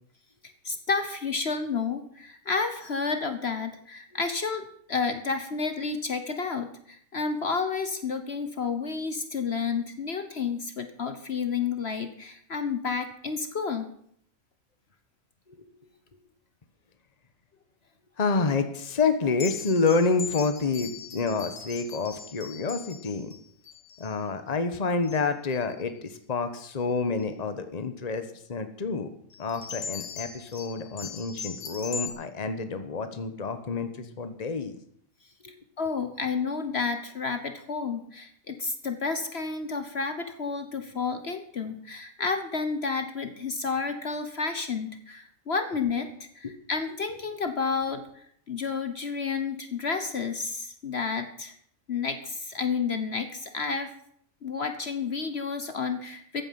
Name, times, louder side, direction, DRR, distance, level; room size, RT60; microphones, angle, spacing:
voice 1, 0.6-13.9 35.8-46.1 46.3-48.0 48.5-51.5 51.9-53.9 54.4-56.4, left 5 dB, 50° left, 8 dB, 1.3 m, -30 dB
voice 2, 18.2-23.3 24.0-29.1 29.4-34.8 35.4-35.5 46.4-46.5, left 4 dB, 30° left, 9 dB, 1.3 m, -28 dB
sound 1, 19.4-24.2 25.0-25.2 25.5-25.9 26.6-26.8 29.3-32.1, left 5 dB, 85° left, 2.1 m, -40 dB
14.5 x 9.2 x 7.6 m, 0.66 s
omnidirectional pair, 1.4 m